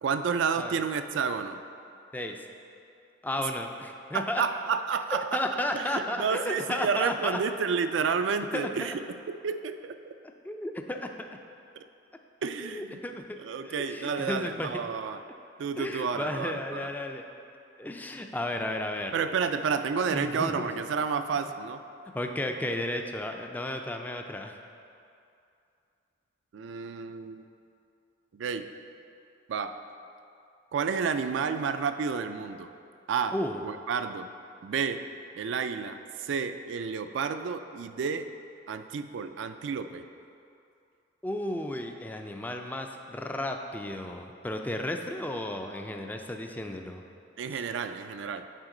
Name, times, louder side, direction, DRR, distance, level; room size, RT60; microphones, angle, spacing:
voice 1, 0.0-1.6 4.1-5.4 5.7-8.9 9.3-10.1 11.8-11.9 12.4-13.0 13.4-15.2 15.6-16.9 19.1-21.8 26.5-27.4 28.3-28.7 29.5-29.8 30.7-32.7 33.1-33.4 33.6-34.3 34.6-35.1 35.4-38.3 38.7-40.1 47.4-48.5, right 6 dB, 70° right, 9 dB, 0.3 m, -30 dB
voice 2, 3.2-4.4 5.3-7.4 8.5-8.7 10.4-11.1 12.6-13.4 13.6-14.9 15.8-17.2 17.8-19.2 20.1-20.6 22.1-24.6 33.3-33.6 41.2-47.0, left 1 dB, 10° left, 4 dB, 0.3 m, -33 dB
9.1 x 4.3 x 3.8 m, 2.6 s
head